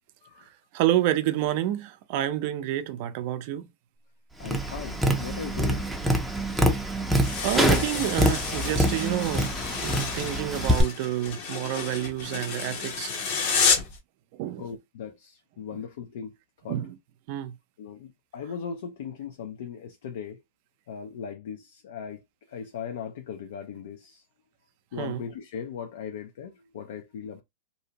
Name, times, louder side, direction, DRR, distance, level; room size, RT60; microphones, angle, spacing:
voice 1, 0.7-3.7 7.4-13.1 14.4-14.6 15.7-15.8 16.7-17.0 17.3-17.5 25.0-25.2, right 13 dB, 55° right, 0.4 m, -28 dB
voice 2, 4.4-5.9 14.6-16.3 16.6-16.8 17.8-20.4 20.9-22.2 22.5-24.2 24.9-27.4, left 7 dB, 70° left, 0.5 m, -38 dB
Tap, 4.4-10.8, equal, 5° right, 0.5 m, -25 dB
sound 1, 7.2-14.0, left 5 dB, 55° left, 0.9 m, -30 dB
2.6 x 2.0 x 2.8 m
hypercardioid pair, 125°, 0 cm